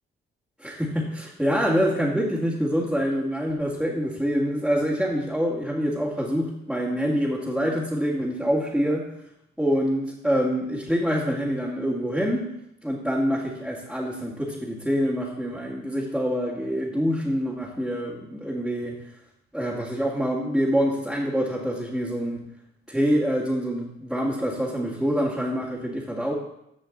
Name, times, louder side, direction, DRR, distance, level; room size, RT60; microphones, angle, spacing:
voice 1, 0.6-9.1 9.6-12.5 12.8-19.0 19.5-22.5 22.9-26.3, equal, ahead, -6 dB, 2.1 m, -26 dB
15.0 x 5.1 x 3.9 m, 0.81 s
cardioid pair, 90°, 20 cm